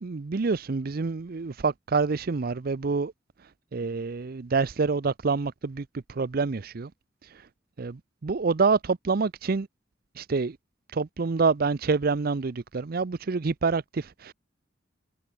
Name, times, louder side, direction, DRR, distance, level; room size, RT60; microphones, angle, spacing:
voice 1, 0.0-3.1 3.7-6.9 7.2-7.3 7.8-9.7 10.2-10.6 10.9-14.3, right 4 dB, 50° right, 0.5 m, -27 dB
head